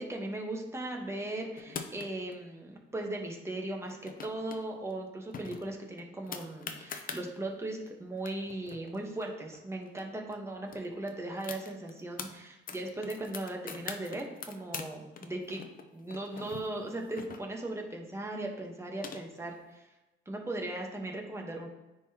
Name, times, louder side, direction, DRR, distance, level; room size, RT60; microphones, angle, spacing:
voice 1, 0.0-15.6 15.9-19.8 20.3-21.7, right 2 dB, 15° right, 0 dB, 1.2 m, -38 dB
sound 1, 1.6-2.3 3.8-4.6 4.9-5.0 5.3-7.2 7.9-8.0 8.2-10.0 10.3-10.4 10.7-12.3 12.7-14.9 15.2-17.8 18.6-19.5, left 6 dB, 45° left, 0.7 m, -43 dB
9.7 x 3.9 x 2.9 m, 1.0 s
cardioid pair, 90°, 20 cm